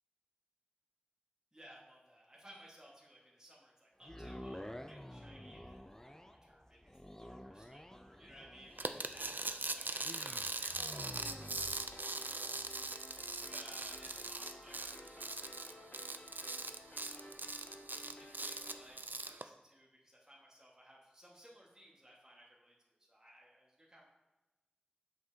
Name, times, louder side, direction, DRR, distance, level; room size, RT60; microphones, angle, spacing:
voice 1, 1.5-24.0, equal, 20° right, -5 dB, 1.5 m, -60 dB
sound 1, 4.0-18.2 18.7-18.8, left 1 dB, 15° left, 0.4 m, -52 dB
sound 2, 8.8-19.4, right 3 dB, 70° right, 0.3 m, -41 dB
sound 3, 10.9-18.9, left 1 dB, 55° left, 0.7 m, -55 dB
7.6 x 5.7 x 2.8 m, 1.1 s
wide cardioid pair, 45°, 3 cm